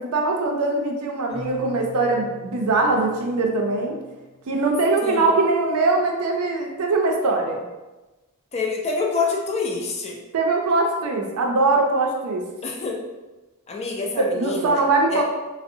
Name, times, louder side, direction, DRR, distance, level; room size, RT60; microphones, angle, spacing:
voice 1, 0.0-4.0 4.5-7.6 10.3-12.5 14.2-15.2, right 3 dB, 70° right, 2 dB, 0.4 m, -22 dB
Keyboard (musical), 1.3-5.0, left 1 dB, 45° left, 0.8 m, -43 dB
voice 2, 5.0-5.4 8.5-10.2 12.6-13.0 13.7-14.8 15.1-15.2, left 4 dB, 30° left, 0 dB, 0.3 m, -26 dB
2.5 x 2.0 x 2.6 m, 1.1 s
head